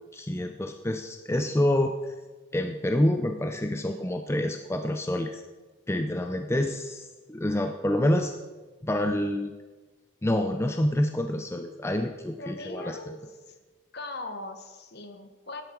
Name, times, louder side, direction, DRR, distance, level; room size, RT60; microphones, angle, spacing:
voice 1, 0.0-2.1 2.5-5.4 5.9-8.3 8.8-9.5 10.2-13.1, left 1 dB, 10° left, 6 dB, 0.5 m, -27 dB
voice 2, 12.4-13.6 13.9-15.6, left 2 dB, 50° left, 7 dB, 1.3 m, -40 dB
12.5 x 10.5 x 4.6 m, 1.3 s
head